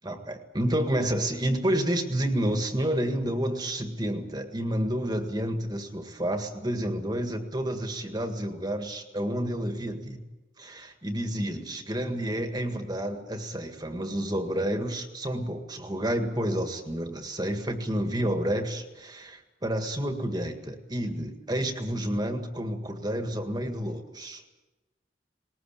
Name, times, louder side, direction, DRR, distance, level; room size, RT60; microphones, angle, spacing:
voice 1, 0.0-10.2 10.6-24.4, right 1 dB, 20° right, 6 dB, 1.8 m, -30 dB
20.0 x 19.5 x 8.8 m, 1.1 s
head